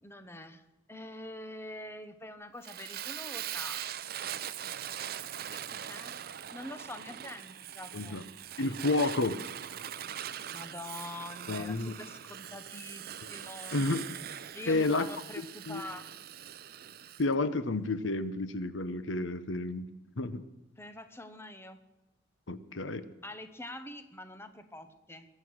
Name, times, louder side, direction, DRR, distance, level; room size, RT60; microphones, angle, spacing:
voice 1, 0.0-3.8 5.5-6.2 6.5-8.2 10.5-13.8 14.5-16.1 20.8-21.8 23.2-25.3, left 1 dB, 15° left, 9 dB, 1.0 m, -45 dB
Fire, 2.6-17.2, right 10 dB, 50° right, 0.6 m, -42 dB
voice 2, 8.6-9.4 11.5-11.9 13.7-14.1 14.7-15.1 15.7-15.8 17.2-19.8 20.2-20.4 22.5-23.1, left 2 dB, 80° left, 13 dB, 0.9 m, -30 dB
22.0 x 7.9 x 6.3 m, 1.0 s
head